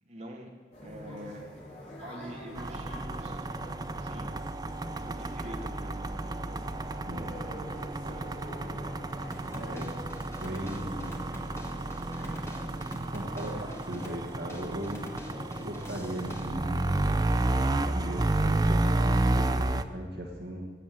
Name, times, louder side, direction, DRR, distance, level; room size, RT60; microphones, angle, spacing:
voice 1, 0.0-0.5 0.8-1.4 2.0-3.4 3.9-4.4 4.9-6.3 7.0-7.7 8.0-9.0, equal, 40° right, 0 dB, 2.1 m, -45 dB
sound 1, 0.7-19.7, left 1 dB, 40° left, 4.4 m, -45 dB
sound 2, 2.6-19.8, right 2 dB, 20° right, 0.4 m, -31 dB
sound 3, 9.3-16.5, left 1 dB, 15° left, 1.4 m, -46 dB
voice 2, 9.4-9.9 10.4-11.1 12.2-12.4 13.1-15.1 15.6-16.9 17.8-20.7, right 1 dB, 60° right, 1 dB, 1.6 m, -38 dB
18.0 x 7.3 x 9.3 m, 1.5 s
head